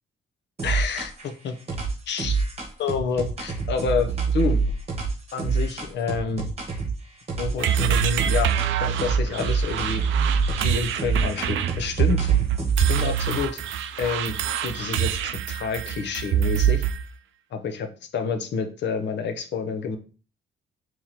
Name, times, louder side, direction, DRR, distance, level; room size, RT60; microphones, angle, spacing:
voice 1, 0.6-1.5 2.1-2.4 2.8-4.6 5.3-6.5 7.4-8.5 8.8-10.0 10.6-12.3 12.8-13.6 14.0-14.4 14.6-16.8 17.5-17.9 18.1-20.0, left 5 dB, 60° left, 6 dB, 0.7 m, -28 dB
sound 1, 0.6-1.3 1.7-6.9 7.3-8.7 9.0-13.4, right 4 dB, 30° right, 1.1 m, -26 dB
sound 2, 7.6-17.0, right 10 dB, 75° right, 0.4 m, -25 dB
3.0 x 2.9 x 3.9 m, 0.37 s
cardioid pair, 90°, 20 cm